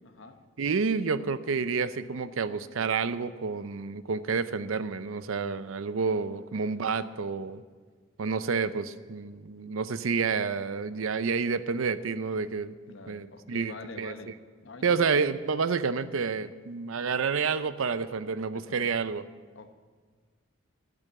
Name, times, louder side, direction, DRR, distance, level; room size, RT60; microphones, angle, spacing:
voice 1, 0.0-0.4 6.5-7.0 12.9-14.4 14.6-15.1 18.5-18.9 19.5-19.7, left 3 dB, 60° left, 8 dB, 0.9 m, -46 dB
voice 2, 0.6-7.6 8.2-12.7 13.1-14.1 14.8-19.2, right 5 dB, 75° right, 14 dB, 0.5 m, -29 dB
12.0 x 6.9 x 9.3 m, 1.5 s
head